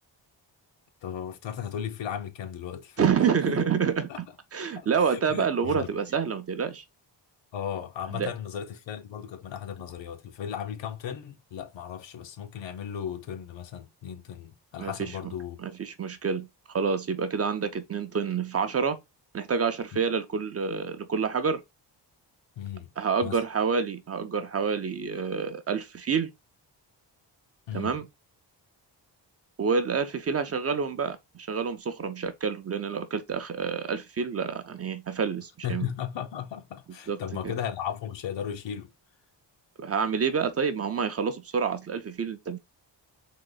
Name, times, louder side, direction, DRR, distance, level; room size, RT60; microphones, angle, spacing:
voice 1, 1.0-3.1 3.5-3.7 4.1-4.2 4.8-5.9 7.5-15.6 22.6-22.9 23.2-23.4 27.7-28.0 35.6-38.9, left 9 dB, 85° left, 0.9 m, -36 dB
voice 2, 3.0-4.1 4.5-6.8 8.1-8.3 14.8-15.1 15.6-19.0 19.3-21.6 23.0-26.3 27.7-28.1 29.6-35.9 37.1-37.2 37.4-37.6 39.8-42.6, right 6 dB, 35° right, 0.5 m, -28 dB
3.8 x 3.0 x 3.8 m
wide cardioid pair, 170°, 43 cm